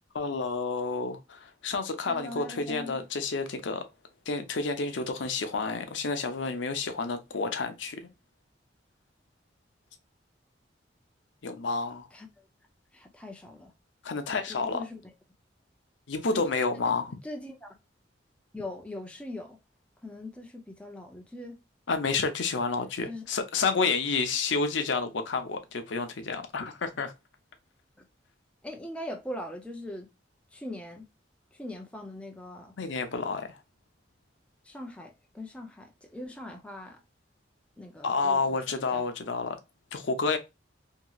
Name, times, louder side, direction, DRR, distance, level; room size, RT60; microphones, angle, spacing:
voice 1, 0.1-3.9 4.3-8.1 11.4-12.1 14.0-14.8 16.1-17.1 21.9-27.1 32.8-33.6 38.0-39.6 39.9-40.4, left 4 dB, 80° left, 0.6 m, -30 dB
voice 2, 2.1-3.0 12.1-12.4 12.9-13.7 14.6-15.0 16.3-16.4 17.2-17.8 18.5-19.6 20.0-21.6 23.1-23.2 28.0-28.1 28.6-30.1 30.5-31.1 31.5-32.7 34.6-37.0 37.8-38.6 38.9-39.0, left 1 dB, 5° left, 0.5 m, -41 dB
2.9 x 2.8 x 2.3 m
head